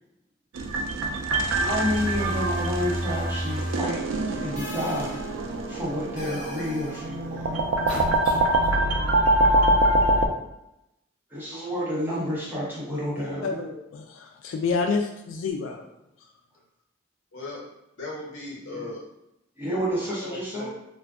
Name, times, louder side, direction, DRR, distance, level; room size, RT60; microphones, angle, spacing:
sound 1, 0.5-10.3, right 1 dB, 80° right, 0.4 m, -25 dB
sound 2, 1.2-3.8 4.5-5.3 6.1-7.0 7.9-8.7, equal, 40° left, 0.8 m, -33 dB
voice 1, 1.5-4.0 4.4-5.2 5.7-7.7 11.3-13.6 18.7-18.9 19.6-20.7, equal, 10° right, -7 dB, 0.8 m, -30 dB
voice 2, 13.4-15.9, left 4 dB, 85° left, 4 dB, 0.3 m, -28 dB
voice 3, 17.3-17.7 18.0-19.0 20.2-20.7, left 2 dB, 70° left, -5 dB, 1.1 m, -37 dB
2.4 x 2.2 x 3.4 m, 0.86 s
head